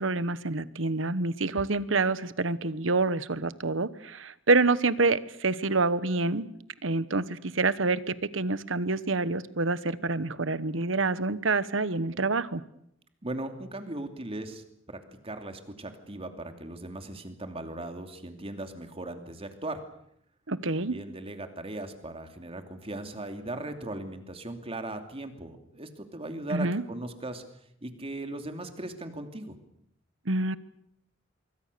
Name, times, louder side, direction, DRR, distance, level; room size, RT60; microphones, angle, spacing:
voice 1, 0.0-6.4 6.8-12.6 20.5-21.0 26.5-26.8 30.3-30.6, right 3 dB, 70° right, 15 dB, 1.2 m, -27 dB
voice 2, 13.2-19.8 20.8-27.4 27.8-29.6, right 2 dB, 30° right, 6 dB, 2.8 m, -38 dB
26.0 x 23.5 x 6.8 m, 0.74 s
head